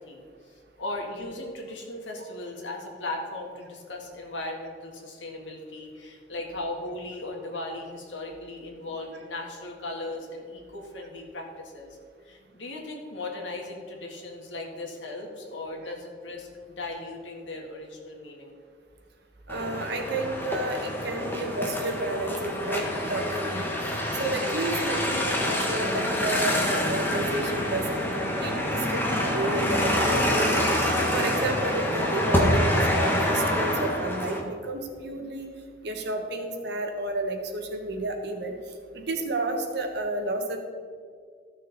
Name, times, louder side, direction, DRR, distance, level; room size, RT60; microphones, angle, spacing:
voice 1, 0.0-12.0 12.2-18.5, left 2 dB, 90° left, 1 dB, 1.8 m, -37 dB
sound 1, 19.5-34.4, left 1 dB, 10° left, 1.3 m, -26 dB
voice 2, 19.5-35.5 35.8-38.5 38.9-40.6, right 2 dB, 65° right, 3 dB, 1.3 m, -31 dB
14.0 x 6.4 x 4.1 m, 2.1 s
head